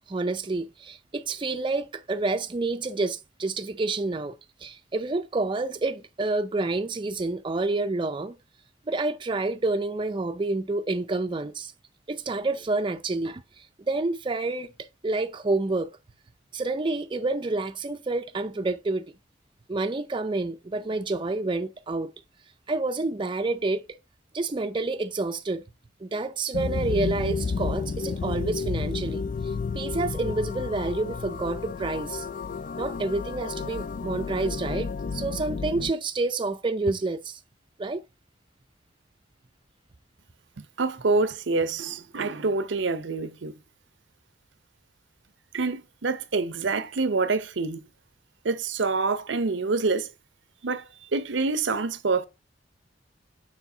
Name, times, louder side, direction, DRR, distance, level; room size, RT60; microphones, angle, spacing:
voice 1, 0.1-4.3 4.6-8.4 8.9-11.7 12.1-13.4 13.9-14.7 15.0-15.9 16.5-19.0 19.7-22.1 22.7-23.8 24.3-25.6 26.0-29.2 29.7-32.3 32.8-37.4 37.8-38.0, right 3 dB, 25° right, 0.5 m, -28 dB
sound 1, 26.5-35.9, left 5 dB, 45° left, 0.3 m, -31 dB
voice 2, 40.8-43.6 45.5-47.8 48.4-50.1 50.6-52.3, right 3 dB, 75° right, 0.7 m, -26 dB
7.1 x 5.1 x 3.8 m
head